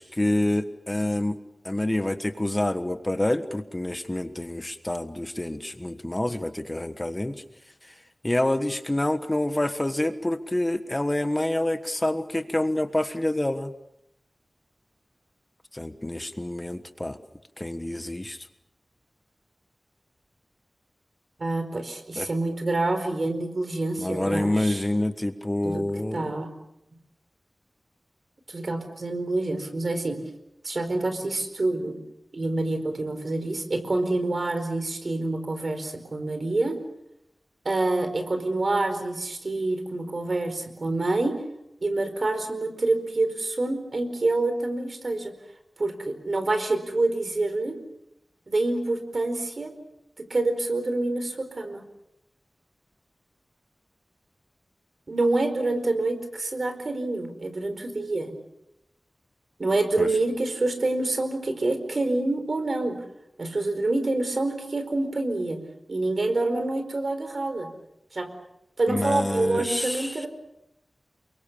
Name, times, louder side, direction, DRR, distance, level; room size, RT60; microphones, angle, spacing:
voice 1, 0.0-1.4 1.6-7.4 7.8-7.9 8.2-13.7 15.7-17.2 17.6-18.5 22.2-22.3 24.0-26.3 60.0-60.1 68.9-70.3, left 1 dB, 20° left, 9 dB, 1.4 m, -27 dB
voice 2, 21.4-24.8 25.6-25.8 26.1-26.5 28.5-30.2 30.6-32.0 32.3-36.8 37.6-41.4 41.8-45.3 45.8-47.8 48.5-49.7 50.2-51.8 55.1-58.3 59.6-62.9 63.4-65.6 65.9-67.7 68.1-68.3 68.8-70.3, right 2 dB, 60° right, 8 dB, 4.6 m, -27 dB
29.0 x 23.5 x 7.0 m, 0.84 s
wide cardioid pair, 85°, 0 cm